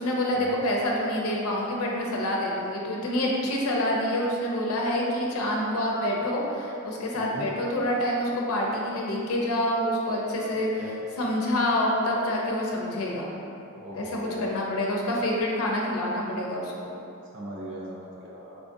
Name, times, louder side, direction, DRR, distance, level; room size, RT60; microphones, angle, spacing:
voice 1, 0.0-10.8 11.2-13.4 13.9-16.7, left 1 dB, 85° left, -2 dB, 0.5 m, -27 dB
voice 2, 7.1-7.5 10.8-11.0 13.7-14.5 17.3-18.6, equal, 55° right, -5 dB, 0.6 m, -39 dB
4.7 x 2.5 x 2.5 m, 2.7 s
head